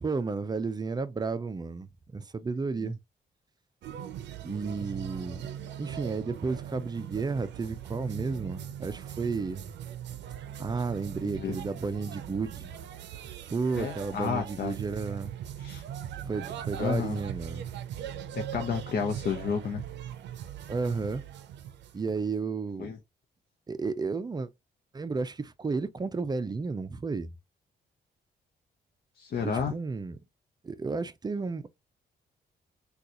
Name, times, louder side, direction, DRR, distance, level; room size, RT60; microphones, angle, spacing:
voice 1, 0.0-3.0 4.4-5.4 5.8-9.6 10.6-12.7 13.5-15.3 16.3-17.7 20.7-21.2 21.9-22.9 23.7-24.5 24.9-27.3 29.5-30.2 30.6-31.7, right 4 dB, 25° right, 0.4 m, -32 dB
sound 1, 3.8-22.4, right 10 dB, 85° right, 0.5 m, -40 dB
voice 2, 11.2-11.6 13.8-14.7 15.6-15.8 16.8-17.2 18.3-19.8 22.8-23.0 29.2-29.7, left 6 dB, 55° left, 0.7 m, -31 dB
3.8 x 2.3 x 2.8 m
cardioid pair, 90°, 18 cm